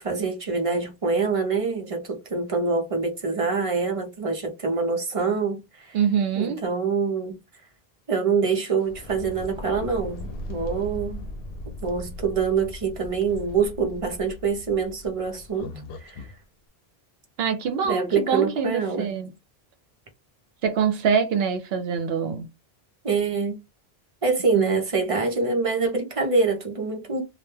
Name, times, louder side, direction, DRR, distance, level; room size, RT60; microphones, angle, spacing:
voice 1, 0.0-6.0 6.4-7.4 8.1-11.2 11.8-15.7 16.0-16.3 17.8-19.1 23.0-23.6 24.2-27.2, right 4 dB, 40° right, 0.7 m, -25 dB
voice 2, 5.9-6.6 17.4-19.3 20.6-22.5 24.5-24.8, right 7 dB, 75° right, 0.8 m, -24 dB
sound 1, 8.8-16.4, left 2 dB, 70° left, 0.7 m, -38 dB
2.2 x 2.1 x 3.1 m
omnidirectional pair, 1.0 m